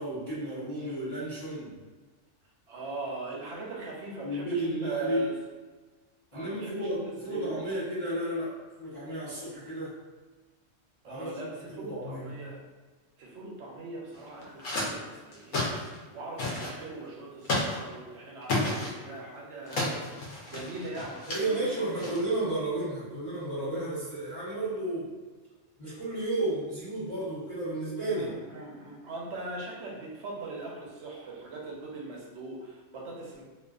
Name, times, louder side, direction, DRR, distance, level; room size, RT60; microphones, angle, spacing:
voice 1, 0.0-1.7 4.2-5.3 6.3-9.9 11.1-11.3 11.7-12.3 21.3-25.1 25.8-28.3, right 1 dB, 30° left, -14 dB, 0.9 m, -32 dB
voice 2, 2.7-5.3 6.3-7.6 11.0-12.6 13.2-20.1 20.5-22.0 28.1-33.4, right 2 dB, 70° right, -2 dB, 0.8 m, -40 dB
sound 1, 14.1-14.9 15.3-16.0 16.4-16.7 17.4-17.8 18.4-18.9 19.7-21.6 22.0-22.4, left 2 dB, 85° left, 1.0 m, -32 dB
2.4 x 2.4 x 2.3 m, 1.3 s
omnidirectional pair, 1.3 m